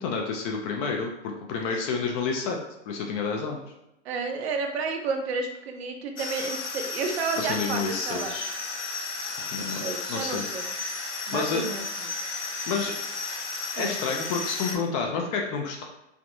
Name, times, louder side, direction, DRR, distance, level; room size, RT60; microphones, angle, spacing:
voice 1, 0.0-2.6 2.9-3.6 7.4-8.5 9.5-10.4 11.3-11.6 12.7-12.9 13.8-15.8, left 5 dB, 30° left, 2 dB, 0.4 m, -29 dB
voice 2, 4.0-8.3 9.6-10.7 11.3-11.8 13.8-13.9, right 4 dB, 60° right, 4 dB, 0.6 m, -31 dB
sound 1, 6.2-14.7, left 4 dB, 80° left, 0.7 m, -33 dB
3.3 x 2.4 x 2.6 m, 0.87 s
figure-of-eight pair, 100°, 35 cm